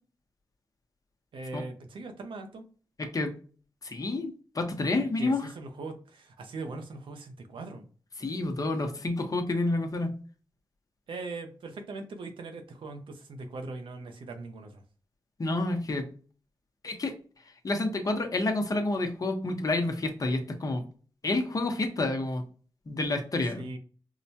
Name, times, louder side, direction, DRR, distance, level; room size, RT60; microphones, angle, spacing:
voice 1, 1.3-2.6 5.0-7.8 11.1-14.8 23.6-23.8, right 3 dB, 80° right, 5 dB, 0.7 m, -40 dB
voice 2, 3.0-3.3 3.8-5.5 8.2-10.2 15.4-16.1 16.8-17.1 17.6-20.8 21.2-22.4 22.9-23.7, left 2 dB, 45° left, 5 dB, 0.9 m, -29 dB
4.7 x 2.2 x 2.8 m, 0.39 s
cardioid pair, 60°, 9 cm